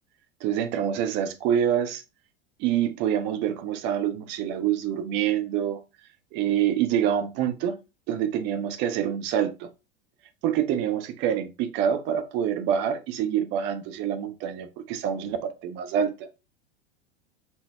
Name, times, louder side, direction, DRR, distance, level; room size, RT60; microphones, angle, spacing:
voice 1, 0.4-2.0 2.6-5.8 6.3-7.8 8.1-9.7 10.4-16.3, right 9 dB, 35° right, 0.6 m, -26 dB
3.9 x 2.1 x 4.1 m
figure-of-eight pair, 85°, 31 cm